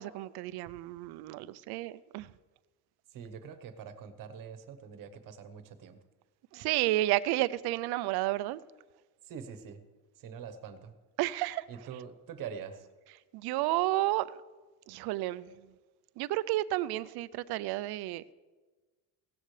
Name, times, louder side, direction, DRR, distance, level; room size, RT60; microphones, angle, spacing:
voice 1, 0.0-2.3 6.5-8.6 11.2-11.6 13.3-14.4 14.9-15.5 16.2-18.3, right 16 dB, 75° right, 17 dB, 0.6 m, -31 dB
voice 2, 3.1-6.0 9.2-9.8 10.1-10.9 11.7-12.9, right 7 dB, 55° right, 11 dB, 1.1 m, -44 dB
16.5 x 13.5 x 3.2 m, 1.3 s
cardioid pair, 145°, 39 cm